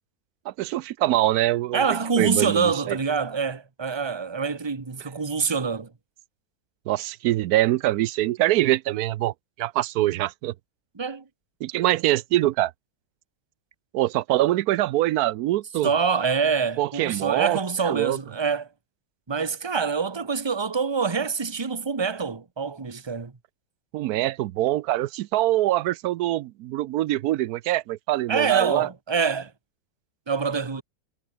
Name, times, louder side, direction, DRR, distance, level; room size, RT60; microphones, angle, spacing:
voice 1, 0.5-3.0 6.9-10.5 11.6-12.7 13.9-15.9 16.8-17.6 17.8-18.2 23.9-28.9, right 15 dB, 85° right, 1.1 m, -24 dB
voice 2, 1.7-5.9 11.0-11.2 15.8-18.7 19.3-23.3 28.3-29.5 30.3-30.8, right 5 dB, 20° right, 1.1 m, -25 dB
omnidirectional pair, 1.6 m